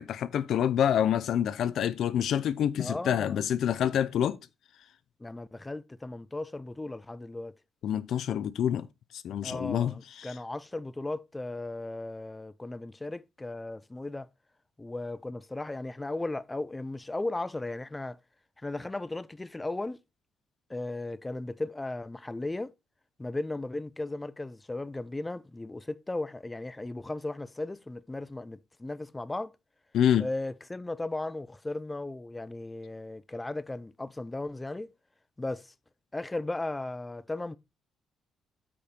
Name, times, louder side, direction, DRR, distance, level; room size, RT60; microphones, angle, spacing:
voice 1, 0.0-4.4 7.8-8.9 9.2-10.3 29.9-30.3, left 9 dB, 70° left, 0.6 m, -27 dB
voice 2, 2.8-3.4 5.2-7.6 9.4-14.3 14.8-18.2 18.6-20.0 20.7-22.7 23.2-29.5 30.2-34.9 35.4-35.7 36.1-37.6, left 2 dB, 15° left, 0.5 m, -36 dB
8.6 x 5.2 x 4.4 m
cardioid pair, 90°, 0 cm